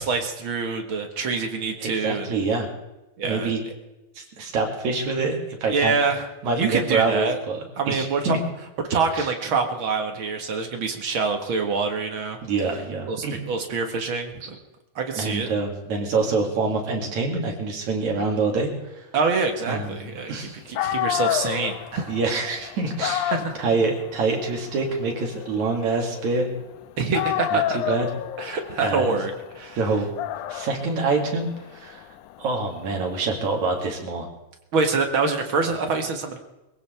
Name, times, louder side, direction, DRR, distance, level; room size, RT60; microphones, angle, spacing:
voice 1, 0.0-2.3 3.2-3.5 5.7-6.3 6.5-7.4 7.8-8.4 8.9-12.4 13.1-14.6 15.0-15.5 19.1-22.1 23.3-23.6 27.0-28.0 28.4-29.3 29.6-29.8 34.7-36.4, right 4 dB, 50° right, 4 dB, 1.9 m, -25 dB
voice 2, 1.8-2.7 3.2-3.6 4.2-6.0 6.4-8.4 9.2-9.3 12.4-13.4 15.1-19.1 19.7-20.6 22.1-26.5 27.5-28.1 28.8-29.2 29.8-30.1 30.5-32.0 32.4-34.3, right 3 dB, 65° right, 1 dB, 3.7 m, -26 dB
Dog, 20.5-20.6 20.8-26.8 27.1-33.9, left 13 dB, 80° left, 2.1 m, -31 dB
23.0 x 16.0 x 3.5 m, 1.0 s
omnidirectional pair, 3.6 m